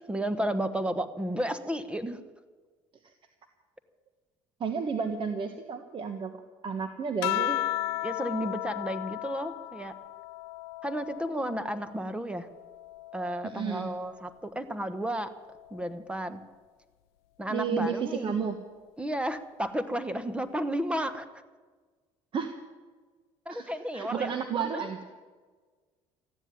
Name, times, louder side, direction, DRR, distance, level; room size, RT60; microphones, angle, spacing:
voice 1, 0.1-2.2 8.0-9.9 10.8-12.5 13.1-15.3 15.7-16.4 17.4-18.4 19.0-21.3 23.4-24.8, right 1 dB, 10° right, 12 dB, 1.2 m, -32 dB
voice 2, 4.6-7.6 13.4-13.9 17.5-18.6 22.3-22.5 23.5-25.0, right 6 dB, 45° right, 7 dB, 1.4 m, -32 dB
sound 1, 7.2-12.0 12.5-14.2 15.4-15.9, left 16 dB, 85° left, 0.5 m, -35 dB
14.5 x 9.9 x 9.6 m, 1.4 s
supercardioid pair, 90°, 12 cm